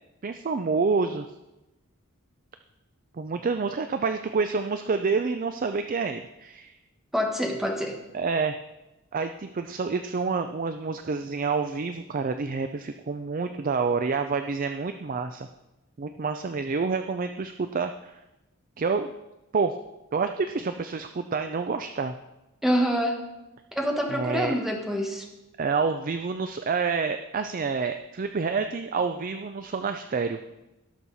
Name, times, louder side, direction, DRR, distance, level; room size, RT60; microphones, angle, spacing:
voice 1, 0.2-1.3 3.2-6.8 8.1-8.6 9.1-15.5 16.0-18.1 18.8-19.1 19.5-19.7 20.1-22.2 24.1-24.5 25.6-30.4, right 4 dB, 40° right, 8 dB, 0.4 m, -28 dB
voice 2, 7.1-8.0 22.6-23.2 23.7-25.2, equal, ahead, 1 dB, 1.5 m, -26 dB
17.5 x 6.3 x 4.1 m, 0.99 s
head